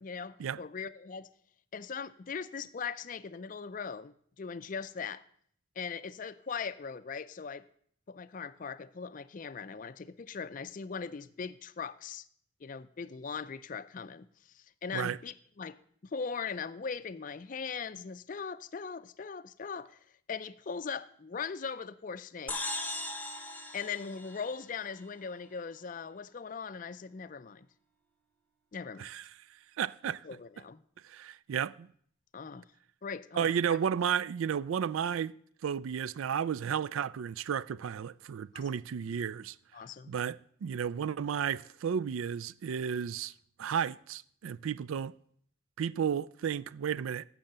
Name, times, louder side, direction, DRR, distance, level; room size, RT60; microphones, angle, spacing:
voice 1, 0.0-1.3 1.7-5.2 5.8-7.7 8.1-12.3 12.6-14.3 14.5-15.8 16.1-20.0 20.3-22.6 23.7-27.7 28.7-29.1 30.2-30.8 32.3-32.6 33.0-33.5 38.5-38.7 39.7-40.1, left 5 dB, 40° left, 0.4 m, -40 dB
sound 1, 22.5-25.1, left 2 dB, 10° left, 1.0 m, -38 dB
voice 2, 29.8-30.2 31.0-31.9 33.3-35.4 35.6-39.6 40.1-43.3 43.6-45.1 45.8-47.3, right 8 dB, 80° right, 0.4 m, -33 dB
11.5 x 7.6 x 6.6 m
head